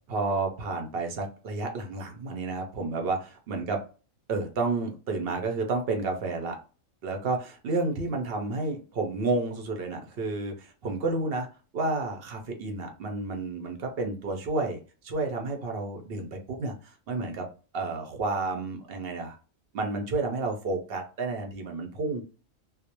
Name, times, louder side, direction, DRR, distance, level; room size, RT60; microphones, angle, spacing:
voice 1, 0.1-3.8 4.3-6.6 7.0-11.5 11.7-17.5 17.7-19.4 19.7-22.2, right 3 dB, 65° right, 3 dB, 0.6 m, -31 dB
2.3 x 2.0 x 2.8 m, 0.35 s
omnidirectional pair, 1.4 m